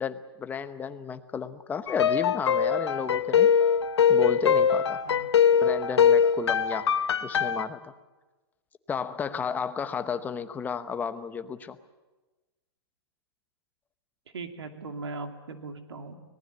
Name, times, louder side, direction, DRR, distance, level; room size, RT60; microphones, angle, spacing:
voice 1, 0.0-3.5 4.1-5.0 5.5-6.9 7.2-7.9 8.9-11.8, left 6 dB, 10° left, 10 dB, 1.0 m, -33 dB
sound 1, 1.9-7.6, left 7 dB, 85° left, 1.2 m, -22 dB
voice 2, 14.3-16.2, right 3 dB, 90° right, 5 dB, 2.7 m, -39 dB
24.5 x 19.0 x 8.2 m, 1.2 s
hypercardioid pair, 150°, 14 cm